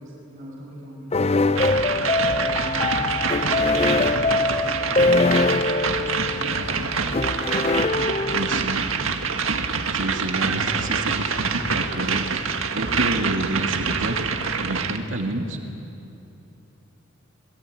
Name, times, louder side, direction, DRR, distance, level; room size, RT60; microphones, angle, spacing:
voice 1, 0.0-3.6 4.1-7.3 7.7-8.3, equal, 40° right, -5 dB, 5.8 m, -41 dB
sound 1, 1.1-8.8, left 3 dB, 30° left, 0.6 m, -23 dB
sound 2, 1.6-15.0, right 5 dB, 90° right, 1.7 m, -26 dB
voice 2, 8.3-8.9 9.9-12.5 12.7-14.2 14.6-15.6, right 1 dB, 70° right, 2 dB, 2.5 m, -29 dB
28.0 x 22.0 x 9.5 m, 2.9 s
head